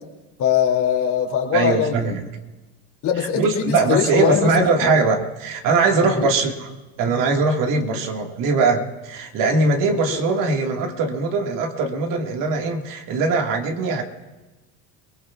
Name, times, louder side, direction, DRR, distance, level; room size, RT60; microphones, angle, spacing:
voice 1, 0.4-2.1 3.0-4.5 4.8-4.9 6.0-6.3 10.0-10.2, left 9 dB, 50° left, 1 dB, 3.0 m, -22 dB
voice 2, 1.5-2.3 3.3-6.7 7.0-14.0, right 3 dB, 55° right, 3 dB, 2.0 m, -21 dB
28.5 x 19.5 x 2.5 m, 1.1 s
supercardioid pair, 105°, 38 cm